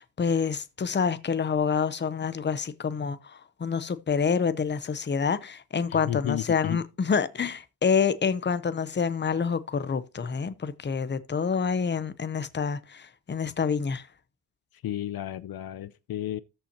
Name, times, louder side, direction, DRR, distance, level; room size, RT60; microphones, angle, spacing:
voice 1, 0.0-14.1, left 6 dB, 30° left, 0.8 m, -27 dB
voice 2, 5.9-6.8 14.7-16.4, left 12 dB, 65° left, 0.6 m, -32 dB
13.5 x 5.6 x 2.9 m
wide cardioid pair, 150°, 39 cm